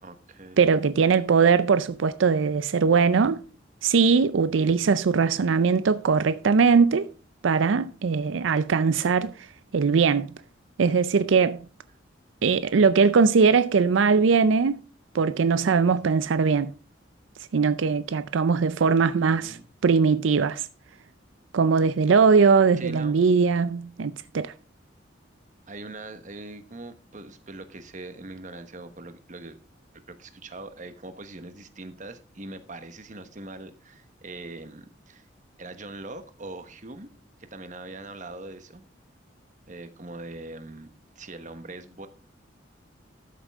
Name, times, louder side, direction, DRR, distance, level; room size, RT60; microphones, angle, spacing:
voice 1, 0.0-0.6 18.8-19.0 19.3-19.7 22.8-23.3 25.7-29.6 30.1-35.3 35.6-37.1 37.4-38.8 39.7-40.9 41.1-42.1, right 2 dB, 40° right, 1.2 m, -41 dB
voice 2, 0.6-3.4 3.8-7.1 7.4-9.5 9.7-10.3 10.8-11.6 12.4-14.8 15.1-16.7 17.5-19.6 19.8-20.7 21.5-24.5, right 5 dB, 80° right, 0.4 m, -21 dB
13.0 x 7.4 x 3.6 m
head